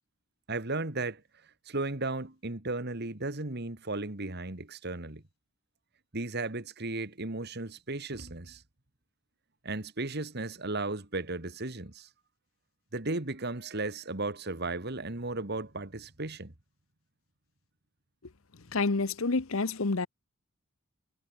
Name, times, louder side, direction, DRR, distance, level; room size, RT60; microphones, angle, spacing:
voice 1, 0.5-1.2 1.7-5.2 6.1-8.6 9.6-12.1 12.9-16.5, right 2 dB, 50° right, 2.1 m, -35 dB
voice 2, 18.7-20.1, left 3 dB, 75° left, 1.0 m, -28 dB
head